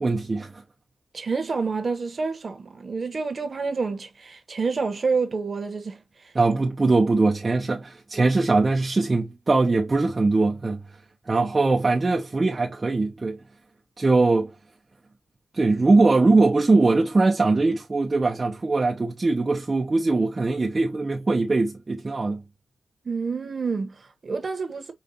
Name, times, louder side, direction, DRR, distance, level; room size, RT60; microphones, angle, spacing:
voice 1, 0.0-0.6 6.3-10.8 11.3-13.4 14.0-14.5 15.5-22.4, right 3 dB, 30° right, 0.6 m, -21 dB
voice 2, 1.1-6.0 23.0-24.9, right 4 dB, 45° right, 1.0 m, -28 dB
5.1 x 2.4 x 2.6 m
cardioid pair, 85°, 0 cm